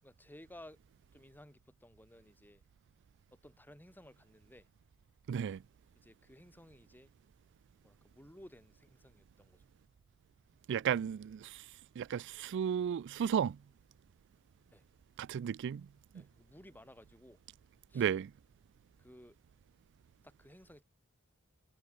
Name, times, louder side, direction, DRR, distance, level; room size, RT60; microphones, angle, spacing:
voice 1, 0.0-0.8 1.1-2.6 3.3-4.7 6.0-7.1 7.8-9.6 14.7-14.8 16.1-17.4 17.9-18.1 19.0-19.4 20.2-20.8, left 1 dB, 10° left, 7.0 m, -57 dB
voice 2, 5.3-5.6 10.7-13.6 15.2-15.9 17.9-18.3, right 8 dB, 55° right, 0.3 m, -34 dB
head